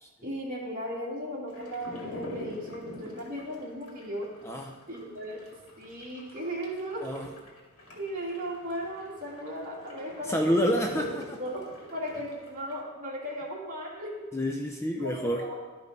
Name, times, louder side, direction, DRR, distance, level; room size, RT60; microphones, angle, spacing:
voice 1, 0.2-4.3 4.9-5.4 5.8-7.1 7.9-10.8 11.4-14.3 15.0-15.5, equal, 40° right, -4 dB, 2.2 m, -36 dB
sound 1, 1.5-12.8, left 1 dB, 85° left, 2.3 m, -43 dB
voice 2, 10.3-11.4 14.3-15.4, equal, 10° left, 2 dB, 0.5 m, -28 dB
12.5 x 5.4 x 4.0 m, 1.4 s
head